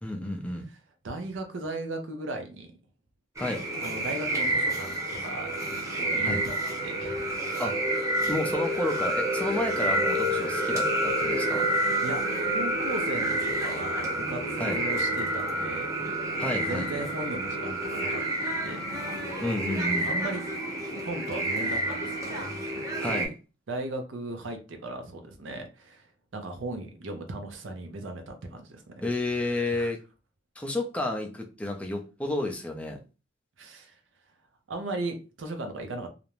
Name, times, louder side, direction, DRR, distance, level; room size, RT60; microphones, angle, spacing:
voice 1, 0.0-0.7 3.4-3.7 6.2-6.4 7.6-7.8 8.2-11.7 14.6-14.8 16.4-17.1 19.4-20.1 23.0-23.3 29.0-30.0 30.6-33.0, left 2 dB, 5° left, 2 dB, 0.5 m, -31 dB
voice 2, 1.0-2.7 3.8-6.6 6.8-7.5 11.7-15.9 16.5-18.2 18.6-19.0 19.8-20.5 21.0-22.5 23.7-26.0 26.3-28.9 29.7-29.9 33.6-33.9 34.7-36.1, right 2 dB, 65° right, 5 dB, 0.6 m, -37 dB
sound 1, 3.4-23.3, right 1 dB, 15° right, 0.8 m, -29 dB
2.5 x 2.1 x 3.0 m, 0.31 s
head